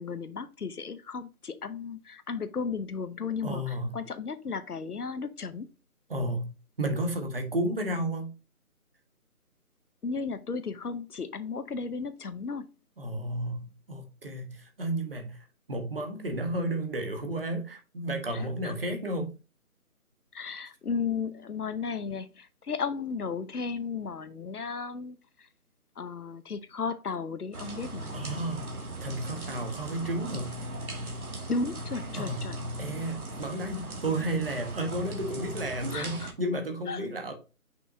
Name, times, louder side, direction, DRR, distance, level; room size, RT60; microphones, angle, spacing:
voice 1, 0.0-5.7 10.0-12.7 18.3-18.7 20.3-25.5 26.0-28.5 31.5-32.6 35.9-36.3 36.9-37.1, left 5 dB, 90° left, 1.0 m, -35 dB
voice 2, 3.4-4.0 6.1-8.3 13.0-19.3 28.1-28.7 29.0-30.6 32.1-32.4 32.8-37.3, right 1 dB, 40° right, 1.4 m, -32 dB
sound 1, 27.5-36.3, right 1 dB, 75° right, 1.9 m, -38 dB
6.1 x 5.7 x 2.8 m
figure-of-eight pair, 170°, 44 cm